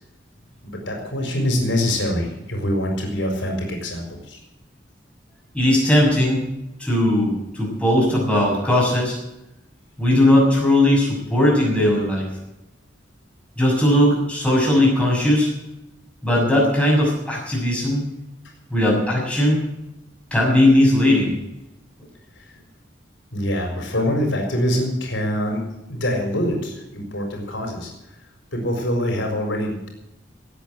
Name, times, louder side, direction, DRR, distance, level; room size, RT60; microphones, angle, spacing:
voice 1, 0.6-4.4 22.4-22.5 23.3-25.6 25.9-27.9 28.5-29.9, equal, 85° left, 3 dB, 4.6 m, -24 dB
voice 2, 5.5-6.4 6.8-9.2 10.0-12.3 13.6-15.5 16.2-18.1 18.7-19.6 20.3-21.4, left 1 dB, 5° left, -3 dB, 6.6 m, -18 dB
18.0 x 8.6 x 7.7 m, 0.88 s
head